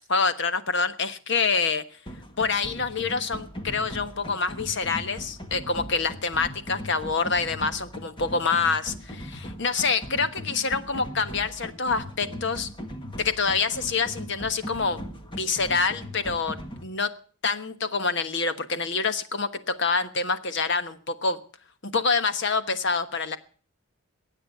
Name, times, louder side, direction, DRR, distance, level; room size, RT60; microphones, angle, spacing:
voice 1, 0.1-1.8 2.4-12.7 13.2-15.0 15.3-17.1 17.4-21.4 21.8-23.4, left 4 dB, 55° left, 11 dB, 1.2 m, -26 dB
sound 1, 2.1-16.8, equal, 25° left, 1.6 m, -39 dB
21.0 x 9.0 x 6.7 m, 0.43 s
head